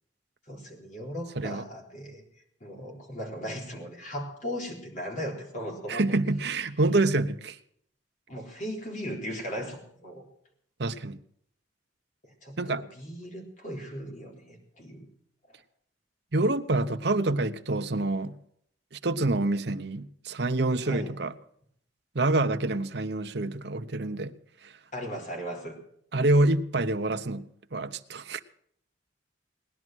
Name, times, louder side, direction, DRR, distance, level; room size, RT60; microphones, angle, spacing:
voice 1, 0.5-2.2 2.6-6.0 8.3-10.3 12.2-15.1 15.5-15.6 20.8-21.1 24.9-25.8, equal, 40° left, 3.9 m, -37 dB
voice 2, 5.9-7.6 10.8-11.2 12.6-12.8 16.3-18.4 18.9-21.3 22.1-24.3 24.6-24.7 26.1-27.4 27.7-28.4, right 2 dB, 60° right, 0.9 m, -27 dB
19.0 x 11.0 x 6.2 m
head